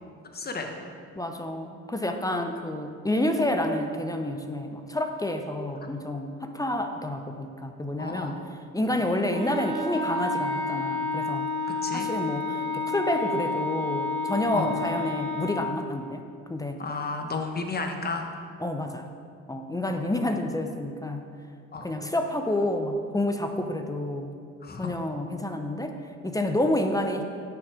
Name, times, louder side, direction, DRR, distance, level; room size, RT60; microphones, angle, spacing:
voice 1, 0.3-0.7 2.4-2.5 8.0-8.5 11.8-12.1 14.5-14.7 16.8-18.3 19.9-20.0 21.7-21.9 23.5-23.7 24.6-24.9 26.6-26.7, left 3 dB, 30° left, 4 dB, 1.2 m, -33 dB
voice 2, 1.2-8.4 8.7-11.5 11.9-16.2 16.5-16.8 18.6-19.1 19.5-21.2 21.8-24.3 24.8-27.2, left 1 dB, 10° left, 5 dB, 0.7 m, -29 dB
Wind instrument woodwind instrument, 9.3-15.7, left 2 dB, 20° right, 2.3 m, -30 dB
9.5 x 6.6 x 4.9 m, 2.3 s
cardioid pair, 90°, 30 cm